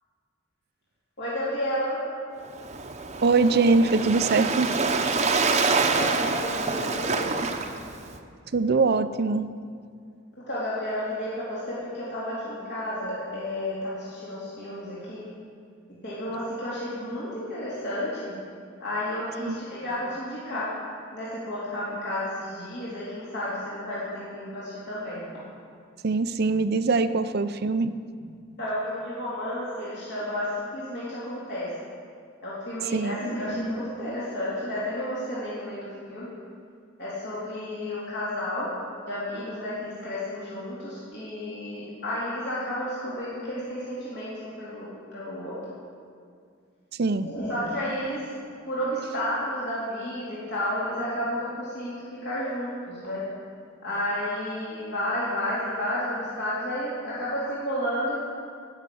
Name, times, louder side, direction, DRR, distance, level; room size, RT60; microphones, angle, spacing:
voice 1, 1.2-2.0 5.6-7.3 10.5-15.2 16.0-18.3 18.8-20.7 21.1-25.2 28.6-31.7 32.4-35.8 36.1-36.3 37.0-38.7 39.1-44.3 44.6-45.6 47.2-48.2 48.7-53.2 53.8-58.2, left 1 dB, 60° left, -9 dB, 3.4 m, -31 dB
Waves surf, 2.5-8.2, right 4 dB, 35° right, 0.9 m, -26 dB
voice 2, 3.2-4.7 8.5-9.5 19.5-19.6 26.0-27.9 32.9-33.2 47.0-47.3, right 3 dB, 55° right, 12 dB, 0.5 m, -22 dB
18.0 x 6.6 x 8.5 m, 2.2 s
head